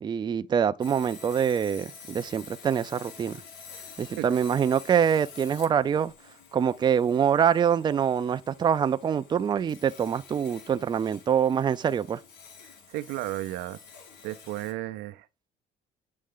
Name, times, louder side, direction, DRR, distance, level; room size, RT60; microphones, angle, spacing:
voice 1, 0.0-3.4 4.0-6.1 6.5-12.2, right 8 dB, 25° right, 0.4 m, -25 dB
Sawing, 0.8-14.7, left 6 dB, 85° left, 1.4 m, -49 dB
voice 2, 3.7-4.3 12.6-13.8 14.2-15.5, right 16 dB, 85° right, 0.5 m, -35 dB
8.6 x 3.2 x 3.7 m
cardioid pair, 110°, 17 cm